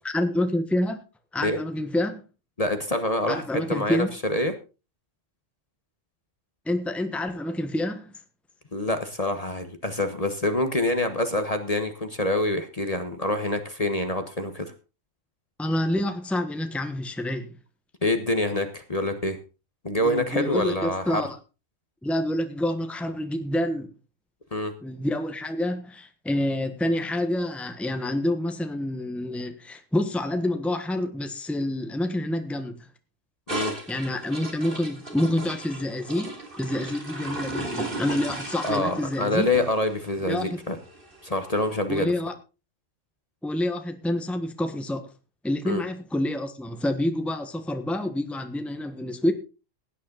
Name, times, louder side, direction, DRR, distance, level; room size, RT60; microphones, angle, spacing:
voice 1, 0.0-1.0 1.3-2.2 3.3-4.1 6.6-8.1 15.6-17.6 20.0-21.4 22.0-23.9 24.8-32.9 33.9-39.5 40.2-40.5 41.9-42.3 43.4-45.1 45.4-49.3, left 1 dB, ahead, 1.2 m, -28 dB
voice 2, 2.6-4.5 8.7-14.7 18.0-19.4 19.8-21.2 24.5-24.7 33.5-33.8 38.6-40.8 41.2-42.1 45.7-45.8, left 1 dB, 30° left, 1.3 m, -26 dB
sound 1, 33.5-41.7, right 2 dB, 45° right, 3.2 m, -36 dB
17.0 x 9.6 x 4.0 m
omnidirectional pair, 1.3 m